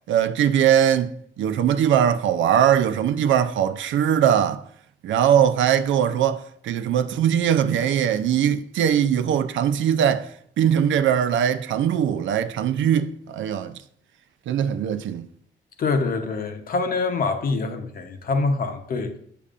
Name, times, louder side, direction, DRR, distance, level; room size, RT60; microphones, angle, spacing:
voice 1, 0.1-4.6 5.0-10.3 10.6-13.8 14.5-15.3, right 9 dB, 80° right, 0.5 m, -21 dB
voice 2, 15.8-19.2, left 3 dB, 50° left, 0.8 m, -25 dB
8.4 x 6.8 x 2.5 m
wide cardioid pair, 160°, 19 cm